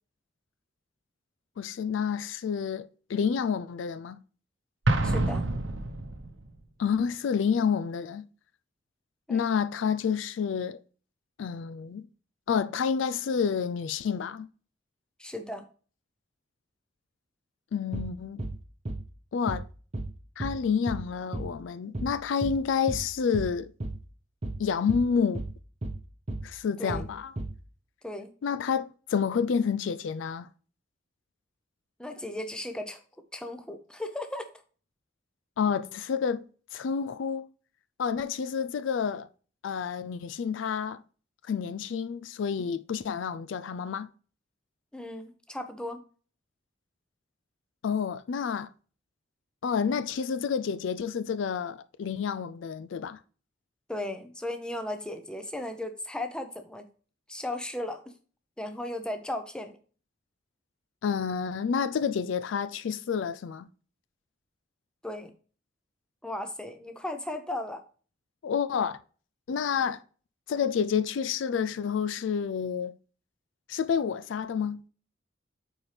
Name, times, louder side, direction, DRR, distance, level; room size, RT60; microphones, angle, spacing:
voice 1, 1.6-4.2 6.8-8.3 9.3-10.8 11.4-12.1 12.5-14.5 17.7-18.4 19.3-19.7 20.4-23.7 24.6-25.4 26.4-27.3 28.4-30.5 35.6-36.5 36.7-37.5 38.0-39.3 39.6-41.0 41.5-44.1 47.8-48.7 49.6-53.2 61.0-63.7 68.4-69.0 69.5-70.0 70.5-73.0 73.7-74.8, left 6 dB, 75° left, 0.4 m, -29 dB
Explosion, 4.9-6.5, right 2 dB, 80° right, 0.9 m, -27 dB
voice 2, 5.0-5.5 9.3-9.5 15.2-15.6 26.8-27.0 28.0-28.3 32.0-33.0 33.3-34.5 44.9-46.0 53.9-56.9 57.3-58.0 58.6-59.8 65.0-65.3 66.2-67.8, left 1 dB, 5° left, 0.6 m, -36 dB
sound 1, 17.9-18.1 18.4-18.6 18.9-19.1 19.5-19.7 19.9-20.1 20.4-20.6 20.9-21.1 21.3-21.5 21.9-22.1 22.4-22.6 22.9-23.1 23.3-23.5 23.8-24.0 24.4-24.6 24.9-25.1 25.4-25.6 25.8-26.0 26.3-26.5 26.9-27.1 27.4-27.6, right 2 dB, 35° right, 0.8 m, -34 dB
8.7 x 4.3 x 3.3 m
head